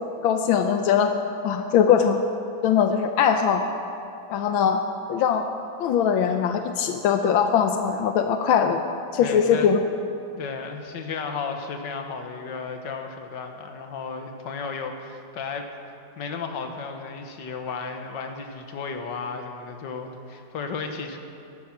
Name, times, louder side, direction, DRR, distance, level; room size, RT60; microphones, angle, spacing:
voice 1, 0.2-1.1 1.4-2.2 2.6-3.6 4.3-4.8 5.1-5.5 5.8-8.8 9.1-9.8, left 8 dB, 85° left, 6 dB, 1.5 m, -21 dB
voice 2, 9.2-9.7 10.3-15.7 16.2-21.2, left 5 dB, 65° left, 5 dB, 1.9 m, -34 dB
17.0 x 12.5 x 6.0 m, 2.6 s
omnidirectional pair, 2.2 m